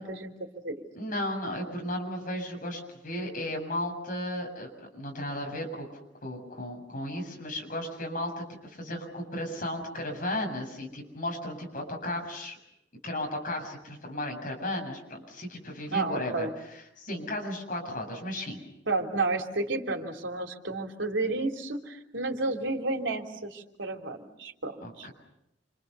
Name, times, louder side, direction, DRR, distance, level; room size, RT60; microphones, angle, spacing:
voice 1, 0.0-0.8 15.9-16.5 18.9-25.1, right 3 dB, 85° right, 3 dB, 3.3 m, -31 dB
voice 2, 0.9-5.9 6.2-12.6 13.0-18.6 24.8-25.1, left 1 dB, 45° left, 1 dB, 7.5 m, -35 dB
29.5 x 26.5 x 6.9 m, 0.81 s
head